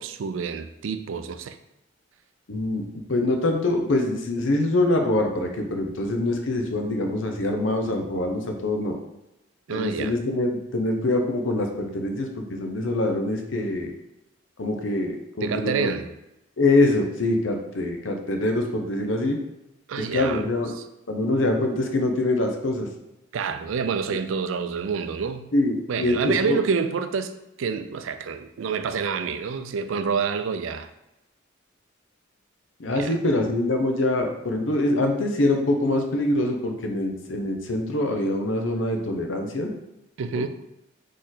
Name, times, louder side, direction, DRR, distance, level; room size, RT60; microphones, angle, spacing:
voice 1, 0.0-1.6 9.7-10.1 15.4-16.1 19.9-20.4 23.3-25.5 25.9-27.3 27.6-30.9 32.9-33.1 40.2-40.5, right 5 dB, 85° right, 10 dB, 0.4 m, -28 dB
voice 2, 2.5-9.0 9.7-13.9 14.6-15.9 16.6-19.4 20.0-20.7 21.1-22.9 25.5-26.6 32.8-39.7 40.4-40.5, left 2 dB, 80° left, 4 dB, 0.7 m, -24 dB
4.3 x 3.1 x 3.9 m, 0.90 s
head